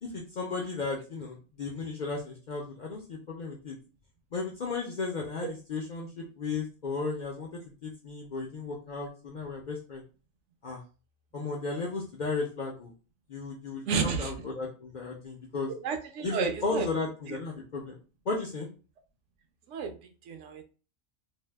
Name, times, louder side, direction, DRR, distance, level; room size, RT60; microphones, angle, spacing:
voice 1, 0.0-3.8 4.3-10.0 10.6-10.8 11.3-12.9 13.3-15.7 16.2-18.0 18.3-18.7, left 4 dB, 75° left, -1 dB, 0.4 m, -35 dB
voice 2, 13.9-14.3 15.7-16.9 17.3-17.4 19.7-19.9 20.2-20.6, right 6 dB, 70° right, 6 dB, 0.9 m, -31 dB
2.6 x 2.0 x 3.2 m, 0.34 s
omnidirectional pair, 1.4 m